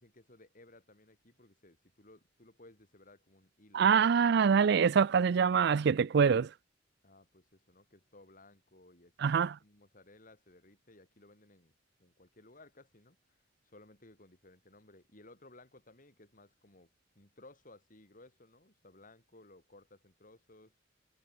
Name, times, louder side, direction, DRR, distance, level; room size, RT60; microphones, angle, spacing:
voice 1, 0.0-4.5 7.0-11.7 12.0-16.9 17.1-20.8, left 2 dB, 45° left, 6.2 m, -59 dB
voice 2, 3.7-6.5 9.2-9.5, right 6 dB, 65° right, 0.4 m, -25 dB
head